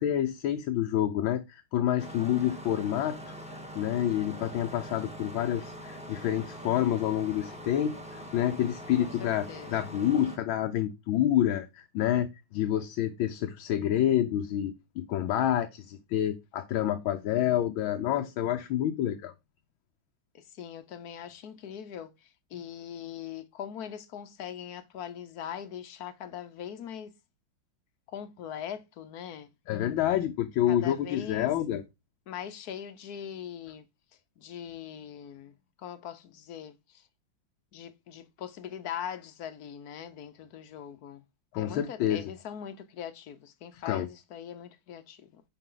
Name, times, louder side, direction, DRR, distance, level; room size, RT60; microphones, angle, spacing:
voice 1, 0.0-3.3 3.8-19.3 29.7-31.8 41.5-42.2 43.9-44.1, left 11 dB, 85° left, 1.6 m, -28 dB
Engine starting, 2.0-10.4, equal, 5° right, 1.3 m, -43 dB
voice 2, 8.9-10.0 20.3-27.1 28.1-29.5 30.7-31.5 32.3-33.9 34.4-37.1 37.7-41.2 41.6-45.4, left 9 dB, 60° left, 1.2 m, -41 dB
9.8 x 4.9 x 3.8 m
omnidirectional pair, 2.2 m